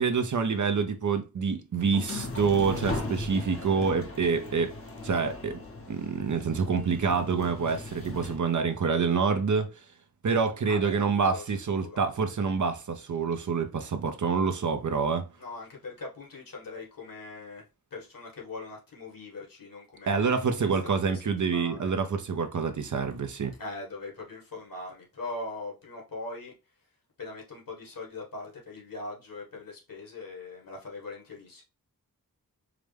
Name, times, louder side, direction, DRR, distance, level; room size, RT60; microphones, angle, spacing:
voice 1, 0.0-4.7 5.0-5.6 5.9-9.7 10.2-15.3 20.1-23.5, right 5 dB, 55° right, 0.6 m, -27 dB
sound 1, 1.8-8.4, left 2 dB, 40° left, 0.8 m, -38 dB
voice 2, 10.7-11.4 11.7-12.0 15.4-17.6 17.9-20.7 21.0-21.1 21.4-21.9 23.6-26.5 27.2-31.6, left 2 dB, 70° left, 1.7 m, -41 dB
4.8 x 2.1 x 3.3 m
wide cardioid pair, 70°, 35 cm